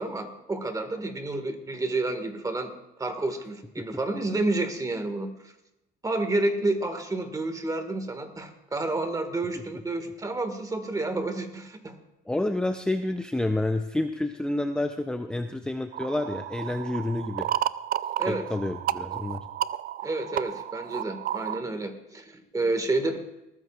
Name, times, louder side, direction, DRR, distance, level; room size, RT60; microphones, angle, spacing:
voice 1, 0.0-2.7 3.0-5.3 6.0-11.9 18.2-18.5 20.0-23.2, right 2 dB, 20° right, 7 dB, 1.7 m, -29 dB
voice 2, 12.3-17.5 18.3-19.5, left 1 dB, 5° left, 6 dB, 0.6 m, -29 dB
Sticks EQ, 15.9-21.6, right 12 dB, 60° right, 0.4 m, -32 dB
19.5 x 14.0 x 2.4 m, 0.92 s
cardioid pair, 110°, 17 cm